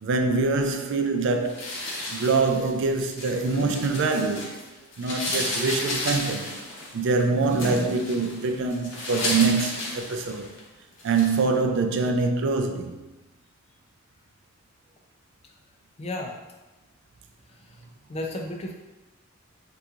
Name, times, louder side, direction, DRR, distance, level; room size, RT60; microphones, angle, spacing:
voice 1, 0.0-1.7 2.1-4.6 5.0-6.6 6.9-10.5 11.0-12.9, right 4 dB, 65° right, 0.4 m, -24 dB
sound 1, 1.5-4.6 4.9-10.6 11.0-11.4, left 1 dB, 65° left, 0.8 m, -33 dB
voice 2, 16.0-16.4 17.6-17.8 18.1-18.7, left 1 dB, 30° left, 0.4 m, -33 dB
2.8 x 2.4 x 3.5 m
head